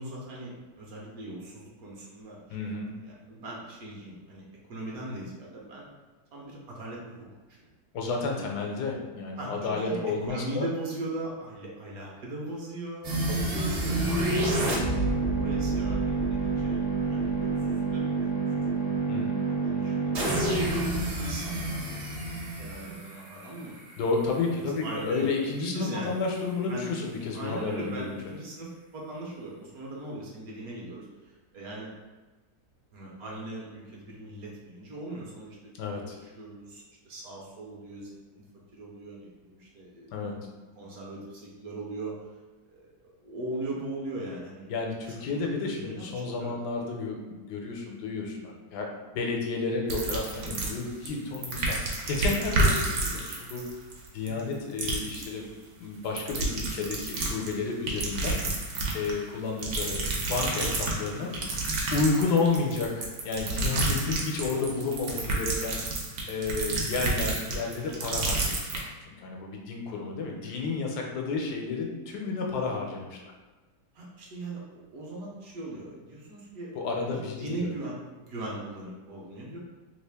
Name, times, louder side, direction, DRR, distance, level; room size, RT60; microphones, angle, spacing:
voice 1, 0.0-2.7 3.0-4.4 4.7-5.9 6.3-7.7 8.3-8.6 9.4-14.1 14.6-21.0 21.3-22.1 22.6-23.8 24.5-25.3 25.6-26.2 26.7-26.9 27.3-31.9 32.9-35.7 36.2-38.4 38.7-40.1 40.5-42.1 42.7-44.7 45.8-46.1 46.4-46.5 54.3-54.5 66.6-66.9 70.2-70.4 73.9-76.7 77.1-79.6, right 1 dB, 65° right, -3 dB, 1.1 m, -39 dB
voice 2, 2.5-2.9 7.9-10.6 13.3-13.5 19.1-19.4 24.0-28.2 35.8-36.1 40.1-40.3 44.7-48.9 49.1-53.6 54.1-55.5 55.8-58.4 58.9-61.3 61.9-65.8 66.3-73.3 76.7-77.7, left 4 dB, 80° left, 0 dB, 1.2 m, -31 dB
sound 1, 13.0-24.0, right 3 dB, 50° right, 0.8 m, -28 dB
sound 2, 49.9-51.1 51.3-54.5 54.8-55.3 56.0-57.5 57.9-59.2 59.6-68.8, right 2 dB, 85° right, 1.3 m, -30 dB
3.1 x 2.4 x 3.4 m, 1.2 s
omnidirectional pair, 1.8 m